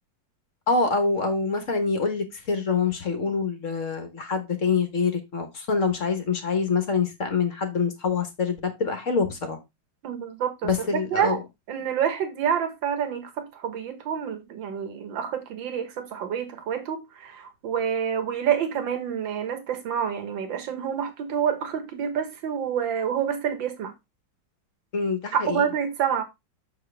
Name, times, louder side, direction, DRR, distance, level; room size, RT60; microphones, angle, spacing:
voice 1, 0.7-9.6 10.6-11.4 24.9-25.6, left 4 dB, 45° left, 1.4 m, -25 dB
voice 2, 10.0-11.4 11.7-23.9 25.3-26.2, right 8 dB, 75° right, 2.1 m, -28 dB
6.9 x 6.6 x 3.3 m
omnidirectional pair, 2.1 m